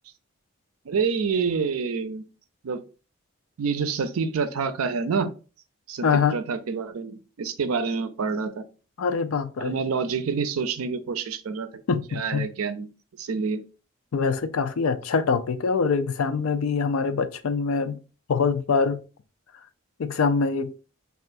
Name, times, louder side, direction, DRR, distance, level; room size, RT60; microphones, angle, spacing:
voice 1, 0.9-2.2 2.6-2.8 3.6-5.3 5.9-6.0 6.3-8.6 9.6-11.7 12.1-12.9 13.2-13.6, right 5 dB, 85° right, 0.5 m, -27 dB
voice 2, 6.0-6.4 9.0-9.8 11.9-12.4 14.1-18.0 18.3-19.0 20.0-20.7, left 5 dB, 75° left, 0.5 m, -24 dB
5.4 x 2.4 x 2.5 m
head